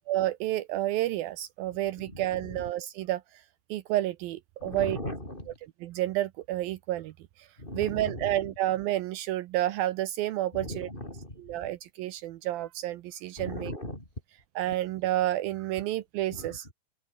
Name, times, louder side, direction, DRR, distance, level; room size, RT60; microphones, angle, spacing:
voice 1, 0.1-3.4 3.7-5.0 5.8-7.5 7.7-10.9 11.4-13.7 14.6-16.7, right 14 dB, 75° right, 2.6 m, -30 dB
voice 2, 2.0-2.6 4.6-5.5 7.6-8.5 10.5-11.4 13.4-14.0 16.3-16.6, left 1 dB, 10° left, 6.5 m, -38 dB
omnidirectional pair, 4.3 m